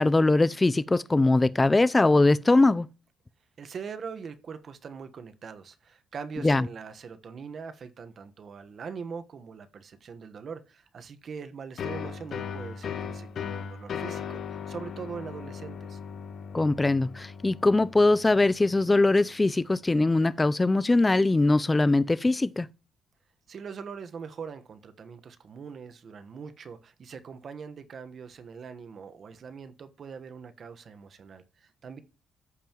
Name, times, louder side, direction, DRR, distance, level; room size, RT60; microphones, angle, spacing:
voice 1, 0.0-2.9 6.4-6.6 16.5-22.7, left 2 dB, 20° left, 0.5 m, -22 dB
voice 2, 3.6-16.0 23.5-32.0, right 6 dB, 50° right, 1.2 m, -42 dB
sound 1, 11.8-19.3, left 7 dB, 60° left, 1.3 m, -38 dB
14.0 x 5.5 x 3.0 m
cardioid pair, 100°, 0 cm